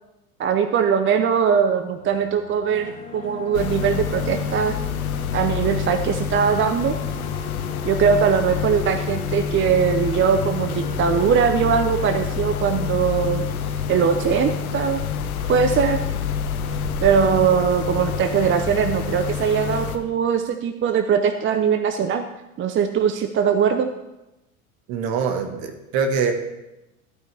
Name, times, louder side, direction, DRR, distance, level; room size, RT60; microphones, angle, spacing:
voice 1, 0.4-4.7 5.3-7.0 7.8-13.4 13.9-15.0 15.5-16.0 17.0-22.2 22.6-23.9, right 7 dB, 30° right, 8 dB, 0.7 m, -21 dB
sound 1, 1.9-12.9, left 4 dB, 20° left, 3.0 m, -39 dB
sound 2, 3.5-20.0, left 7 dB, 85° left, 1.0 m, -27 dB
voice 2, 24.9-26.3, right 5 dB, 55° right, 6 dB, 1.7 m, -23 dB
13.0 x 9.0 x 3.5 m, 0.97 s
hypercardioid pair, 80°, 42 cm